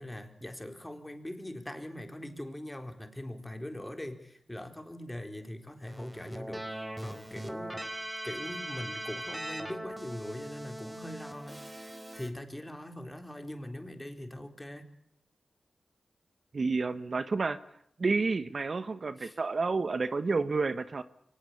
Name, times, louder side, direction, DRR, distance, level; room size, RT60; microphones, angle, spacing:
voice 1, 0.0-7.8 8.2-11.6 12.1-14.9 19.2-19.4, left 1 dB, 15° left, 6 dB, 4.1 m, -41 dB
Keyboard (musical), 5.9-12.3, right 1 dB, 15° right, 3.9 m, -40 dB
voice 2, 16.5-17.6 18.0-21.0, right 4 dB, 55° right, 12 dB, 1.2 m, -30 dB
23.5 x 19.5 x 8.5 m, 0.72 s
cardioid pair, 60°, 0 cm